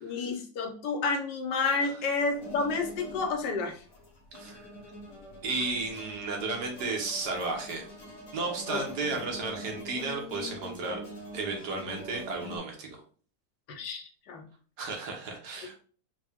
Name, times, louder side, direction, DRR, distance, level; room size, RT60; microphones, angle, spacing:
voice 1, 0.0-3.8 8.7-8.8 9.1-9.2 13.7-14.5, left 4 dB, 75° left, 3 dB, 1.3 m, -30 dB
sound 1, 2.3-12.6, left 1 dB, 55° left, 1.2 m, -44 dB
voice 2, 5.4-7.9 8.3-11.0 11.3-13.0 14.8-15.8, right 3 dB, 75° right, 1 dB, 1.5 m, -33 dB
4.1 x 2.2 x 3.5 m, 0.42 s
omnidirectional pair, 1.8 m